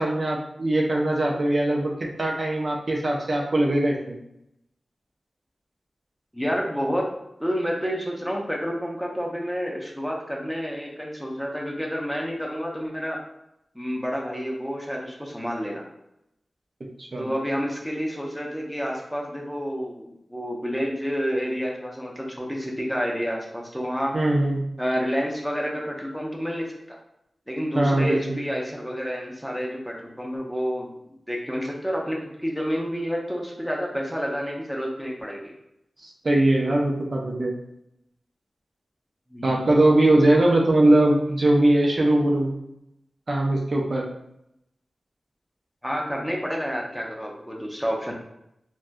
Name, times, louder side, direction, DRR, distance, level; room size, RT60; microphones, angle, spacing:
voice 1, 0.0-4.2 17.0-17.3 24.1-24.6 27.8-28.4 36.0-37.6 39.4-42.5 43.3-44.1, right 1 dB, 55° right, -1 dB, 0.5 m, -21 dB
voice 2, 6.3-7.1 7.4-13.2 13.7-15.8 17.2-24.2 24.8-27.0 27.5-35.5 39.3-39.6 45.8-48.1, equal, ahead, -2 dB, 0.6 m, -29 dB
3.4 x 2.2 x 2.6 m, 0.81 s
wide cardioid pair, 60°, 0 cm